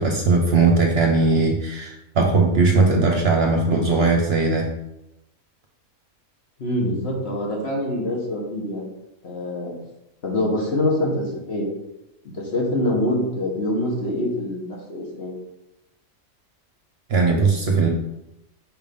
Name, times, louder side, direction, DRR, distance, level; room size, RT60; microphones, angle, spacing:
voice 1, 0.0-4.7 17.1-17.9, right 3 dB, 55° right, 2 dB, 0.9 m, -19 dB
voice 2, 6.6-8.9 9.2-9.7 10.2-11.7 12.4-15.3, left 1 dB, 50° left, -2 dB, 1.5 m, -25 dB
4.9 x 3.6 x 5.2 m, 0.89 s
omnidirectional pair, 1.5 m